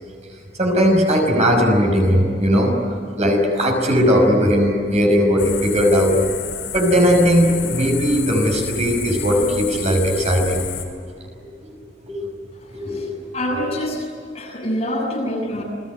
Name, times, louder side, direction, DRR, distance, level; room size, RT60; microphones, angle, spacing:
voice 1, 0.6-6.2 6.7-10.6 11.6-11.8 12.1-12.2 12.7-13.1, equal, 40° right, 2 dB, 5.6 m, -18 dB
sound 1, 5.4-10.8, left 8 dB, 90° left, 5.6 m, -31 dB
voice 2, 12.5-14.1 14.3-15.6, left 1 dB, 35° left, -1 dB, 7.9 m, -26 dB
29.5 x 20.5 x 9.6 m, 2.2 s
head